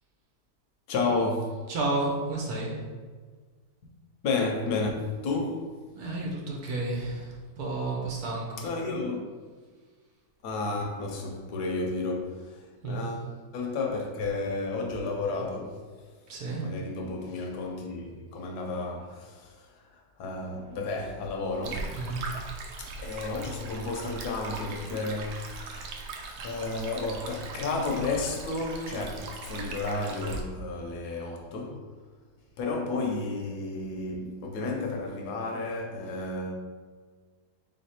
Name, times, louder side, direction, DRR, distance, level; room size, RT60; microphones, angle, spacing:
voice 1, 0.9-1.5 4.2-5.7 8.6-9.3 10.4-13.3 13.5-15.9 16.6-22.2 22.8-26.0 26.4-31.9 32.6-36.5, left 3 dB, 75° left, 1.2 m, -32 dB
voice 2, 1.7-2.8 5.9-8.6 12.8-13.1 16.3-16.7 21.9-22.4, right 2 dB, 70° right, 1.3 m, -31 dB
Stream, 21.6-30.4, right 3 dB, 85° right, 1.2 m, -39 dB
3.6 x 3.3 x 4.2 m
omnidirectional pair, 1.8 m